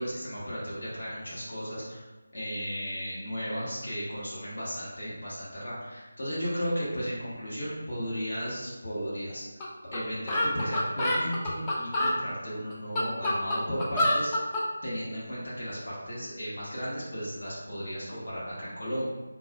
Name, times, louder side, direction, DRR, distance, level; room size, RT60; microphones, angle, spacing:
voice 1, 0.0-2.0 2.3-9.4 9.9-14.3 14.8-19.1, equal, 60° left, -8 dB, 1.2 m, -34 dB
sound 1, 9.6-9.7 9.9-10.0 10.3-12.2 12.7-14.7, left 1 dB, 15° left, 0.4 m, -27 dB
4.0 x 2.2 x 2.4 m, 1.3 s
figure-of-eight pair, 165°, 0 cm